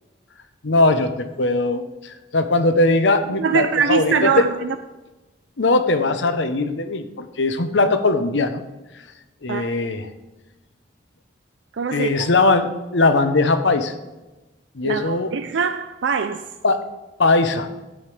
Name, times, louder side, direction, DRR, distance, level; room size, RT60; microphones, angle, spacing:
voice 1, 0.6-4.5 5.6-8.6 9.4-10.1 11.9-13.9 14.7-15.3 16.6-16.8 17.2-17.7, left 2 dB, 85° left, 9 dB, 0.9 m, -20 dB
voice 2, 3.4-4.8 9.5-9.7 11.7-12.3 14.8-16.4, right 5 dB, 85° right, 9 dB, 0.5 m, -22 dB
13.0 x 8.8 x 3.3 m, 1.1 s
head